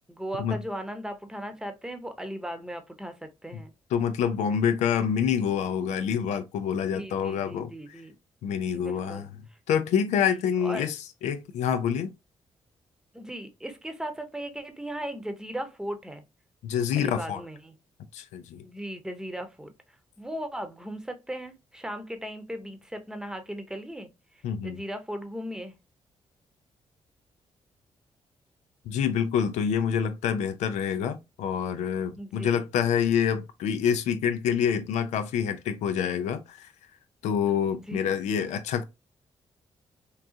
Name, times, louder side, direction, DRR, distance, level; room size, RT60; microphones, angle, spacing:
voice 1, 0.1-3.7 6.7-8.1 8.6-9.3 10.6-10.9 13.1-16.2 17.0-17.7 18.6-19.7 20.2-24.1 24.6-25.7 32.2-32.7 37.9-38.1, equal, 5° right, 0.8 m, -37 dB
voice 2, 3.9-7.7 8.4-9.3 9.7-12.1 16.6-17.4 18.1-18.6 24.4-24.8 28.9-36.7 37.2-38.8, left 8 dB, 90° left, 0.4 m, -27 dB
3.7 x 2.4 x 2.7 m
supercardioid pair, 60°, 12 cm